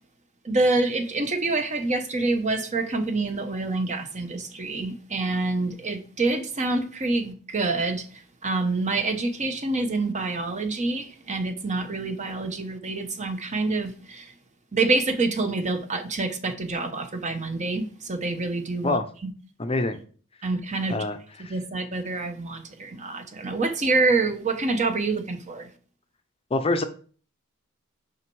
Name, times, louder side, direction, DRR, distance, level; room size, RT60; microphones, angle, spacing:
voice 1, 0.4-8.1 8.4-14.3 14.7-19.0 20.4-21.0 21.5-25.7, right 3 dB, 35° right, 0.9 m, -26 dB
voice 2, 19.6-20.0 20.9-21.5 26.5-26.8, left 2 dB, 25° left, 0.6 m, -26 dB
6.0 x 5.2 x 4.6 m
head